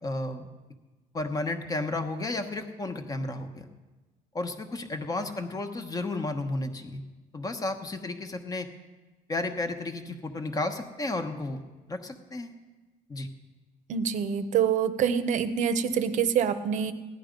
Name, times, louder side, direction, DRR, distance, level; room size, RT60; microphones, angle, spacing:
voice 1, 0.0-0.5 1.1-3.7 4.3-7.0 7.3-8.7 9.3-11.6 11.9-12.5 13.1-13.3, left 2 dB, 25° left, 7 dB, 1.0 m, -32 dB
voice 2, 13.9-16.9, right 7 dB, 55° right, 11 dB, 0.7 m, -26 dB
15.0 x 10.5 x 5.2 m, 1.2 s
cardioid pair, 145°, 15 cm